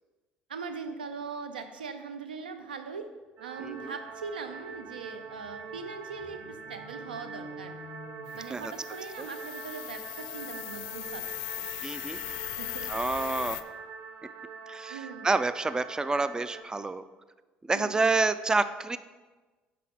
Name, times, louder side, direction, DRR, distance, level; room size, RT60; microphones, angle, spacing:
voice 1, 0.5-3.1 3.4-7.7 8.3-11.2 11.6-11.7 12.4-13.3 14.9-15.3 17.7-18.1, right 5 dB, 90° right, 8 dB, 0.5 m, -41 dB
sound 1, 3.4-16.6, right 5 dB, 50° right, 0.7 m, -44 dB
voice 2, 3.6-3.9 8.5-8.7 9.2-9.3 11.8-12.2 12.9-13.6 14.7-17.0 17.7-19.0, right 3 dB, 15° right, 14 dB, 0.4 m, -28 dB
sound 2, 3.7-3.8 4.0-9.1, equal, 65° right, 1.9 m, -51 dB
sound 3, 8.3-13.6, left 17 dB, 70° left, 0.4 m, -39 dB
8.3 x 5.8 x 3.5 m, 1.3 s
hypercardioid pair, 60°, 5 cm